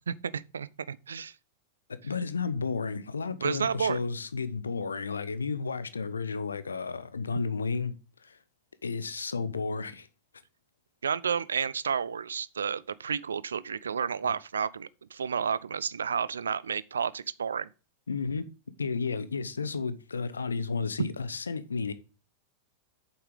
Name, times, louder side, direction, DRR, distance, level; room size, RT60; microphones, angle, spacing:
voice 1, 0.1-1.3 3.4-4.0 11.0-17.7, right 6 dB, 70° right, 0.4 m, -31 dB
voice 2, 2.0-7.9 8.2-8.4 8.8-10.1 14.2-14.3 18.1-18.5 18.8-21.9, left 4 dB, 75° left, 0.8 m, -32 dB
8.7 x 7.1 x 3.7 m
figure-of-eight pair, 90°, 0 cm